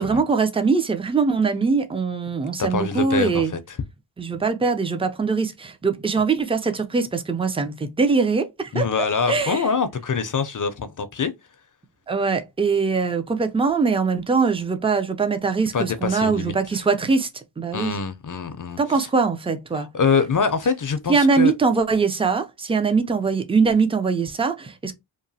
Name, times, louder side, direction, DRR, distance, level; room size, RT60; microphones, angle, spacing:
voice 1, 0.0-3.5 4.2-9.6 12.1-18.0 18.8-19.9 21.1-24.9, right 4 dB, 15° right, 0.3 m, -22 dB
voice 2, 2.6-3.8 8.7-11.3 15.7-16.8 17.7-18.8 19.8-21.5, left 5 dB, 45° left, 0.5 m, -24 dB
2.9 x 2.1 x 2.6 m
wide cardioid pair, 65°, 46 cm